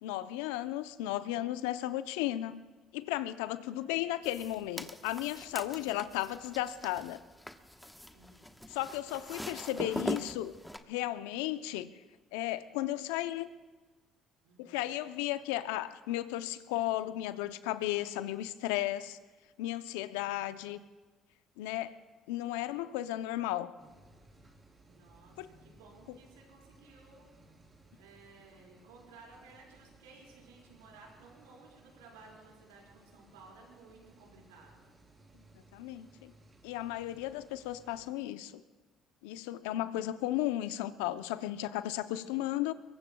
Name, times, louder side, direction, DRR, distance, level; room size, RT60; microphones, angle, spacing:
voice 1, 0.0-2.6 2.9-7.2 8.7-10.6 10.9-11.9 12.3-13.5 14.6-19.2 19.6-20.8 21.6-21.9 22.3-23.7 25.4-25.5 35.7-36.3 36.6-38.6 39.2-42.7, left 14 dB, 80° left, 13 dB, 0.6 m, -34 dB
voice 2, 3.6-4.3 5.8-6.1 8.1-8.6 9.5-10.1 14.4-15.0 20.2-20.7 24.8-27.3 28.0-34.9 39.6-40.3 42.2-42.5, right 3 dB, 85° right, -2 dB, 4.5 m, -57 dB
sound 1, 4.2-10.8, left 1 dB, 5° left, 1.1 m, -42 dB
sound 2, 23.8-38.1, right 2 dB, 30° right, 3.9 m, -61 dB
24.0 x 22.0 x 2.3 m, 1.3 s
hypercardioid pair, 60°, 0 cm